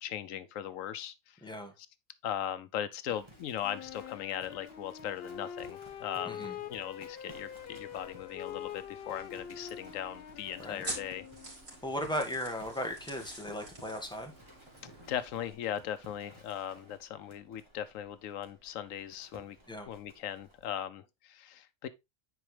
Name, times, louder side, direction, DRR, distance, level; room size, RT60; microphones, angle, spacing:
voice 1, 0.0-1.4 2.2-11.3 15.1-19.6 19.9-21.9, left 10 dB, 90° left, 1.0 m, -39 dB
voice 2, 1.4-1.7 6.2-6.6 10.6-10.8 11.8-14.3 19.7-19.9, left 1 dB, 5° left, 1.5 m, -36 dB
Livestock farm animals working animals, 3.1-20.7, equal, 20° right, 2.0 m, -57 dB
Wind instrument woodwind instrument, 3.6-11.6, left 8 dB, 60° left, 0.8 m, -45 dB
sound 1, 7.3-15.5, right 2 dB, 75° right, 3.6 m, -48 dB
9.6 x 4.6 x 3.3 m
omnidirectional pair, 1.3 m